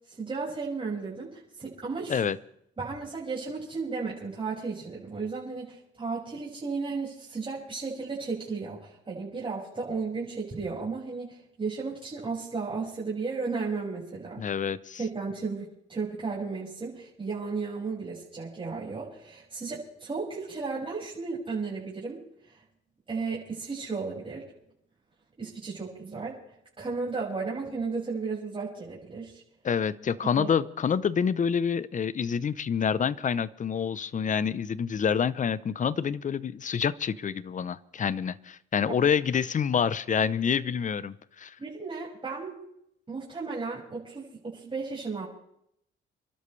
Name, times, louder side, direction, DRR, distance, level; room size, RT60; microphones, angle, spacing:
voice 1, 0.1-2.2 2.8-14.5 15.0-22.2 22.5-22.6 23.1-24.4 25.4-26.4 26.8-29.4 30.3-30.5 41.6-42.6 43.1-45.2, right 4 dB, 25° right, -7 dB, 6.0 m, -34 dB
voice 2, 14.4-15.0 29.6-41.6, left 7 dB, 40° left, 17 dB, 0.8 m, -27 dB
28.0 x 12.5 x 3.3 m, 0.74 s
cardioid pair, 90°, 20 cm